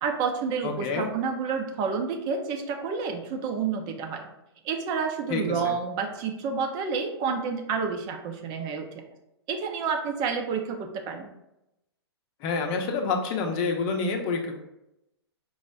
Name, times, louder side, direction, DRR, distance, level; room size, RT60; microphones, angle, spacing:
voice 1, 0.0-4.3 4.6-9.0 9.5-11.3, right 5 dB, 30° right, 4 dB, 0.7 m, -29 dB
voice 2, 0.6-1.1 5.3-5.7 12.4-14.6, left 4 dB, 35° left, 2 dB, 0.8 m, -28 dB
5.4 x 2.1 x 4.7 m, 0.89 s
hypercardioid pair, 120°, 14 cm